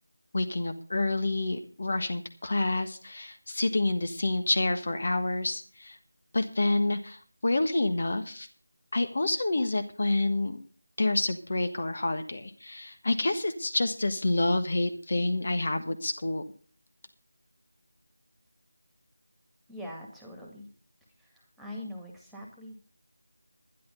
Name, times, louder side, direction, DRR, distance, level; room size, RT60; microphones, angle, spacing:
voice 1, 0.3-6.0 6.3-8.5 8.9-10.6 11.0-16.4, left 2 dB, 50° left, 8 dB, 1.4 m, -28 dB
voice 2, 19.7-20.7 21.2-22.9, left 1 dB, ahead, -1 dB, 2.0 m, -43 dB
11.0 x 11.0 x 5.5 m, 0.41 s
figure-of-eight pair, 170°, 0 cm